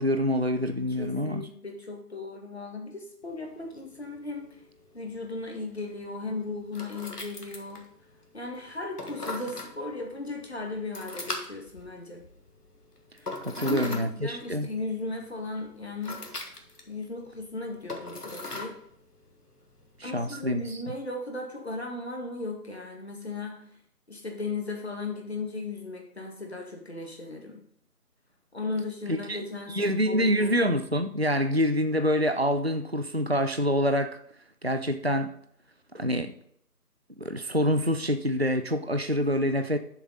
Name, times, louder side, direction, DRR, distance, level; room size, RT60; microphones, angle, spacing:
voice 1, 0.0-1.5 13.4-14.7 20.0-20.8 29.1-34.2 34.6-35.3 35.9-36.3 37.2-39.8, equal, 45° right, 0.5 m, -26 dB
voice 2, 1.0-4.6 4.9-7.9 8.3-12.2 13.5-16.2 16.9-18.7 20.0-23.6 24.1-27.6 28.5-30.5, left 3 dB, 40° left, 2.0 m, -36 dB
sound 1, 3.2-20.7, left 2 dB, 70° left, 1.7 m, -43 dB
10.5 x 7.2 x 4.0 m
figure-of-eight pair, 165°, 47 cm